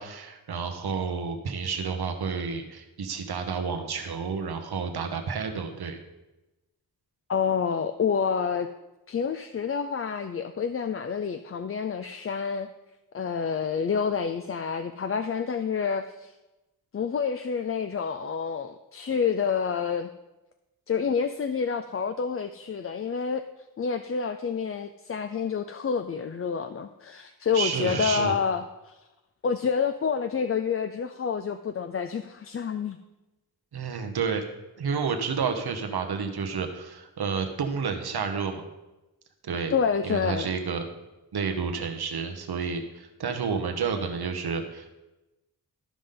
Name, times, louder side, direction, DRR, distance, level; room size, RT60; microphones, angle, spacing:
voice 1, 0.0-6.0 27.5-28.3 33.7-34.4 34.8-38.6 39.4-39.7 40.0-40.9 41.3-44.9, right 5 dB, 85° right, 5 dB, 1.1 m, -30 dB
voice 2, 7.3-8.7 9.1-12.7 13.1-16.3 16.9-20.1 20.9-23.4 23.8-29.0 29.4-33.0 39.7-40.5, left 6 dB, 40° left, 8 dB, 0.4 m, -28 dB
13.5 x 5.2 x 3.8 m, 1.0 s
cardioid pair, 65°, 38 cm